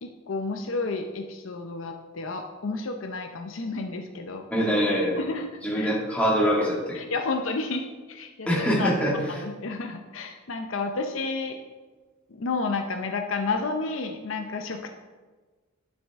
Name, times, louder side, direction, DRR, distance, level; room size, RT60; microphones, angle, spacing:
voice 1, 0.0-4.4 5.2-5.5 5.7-5.9 6.9-8.5 8.8-8.9 9.3-11.6 12.4-14.9, left 3 dB, 70° left, 5 dB, 0.6 m, -31 dB
voice 2, 4.5-5.2 5.6-7.0 8.5-9.1, equal, 5° left, -5 dB, 2.1 m, -24 dB
11.5 x 6.2 x 3.5 m, 1.3 s
head